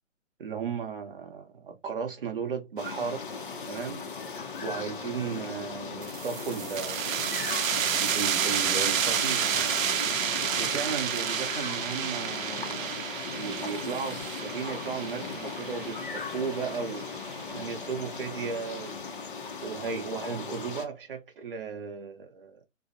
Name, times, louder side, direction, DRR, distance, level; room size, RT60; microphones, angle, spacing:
voice 1, 0.4-3.3 3.7-4.0 4.3-7.4 7.9-10.0 10.6-19.0 19.6-22.6, right 6 dB, 45° right, 0.7 m, -35 dB
sound 1, 2.8-20.9, left 5 dB, 45° left, 0.5 m, -38 dB
sound 2, 6.0-17.4, right 8 dB, 85° right, 0.6 m, -30 dB
2.5 x 2.0 x 2.5 m
hypercardioid pair, 165°, 39 cm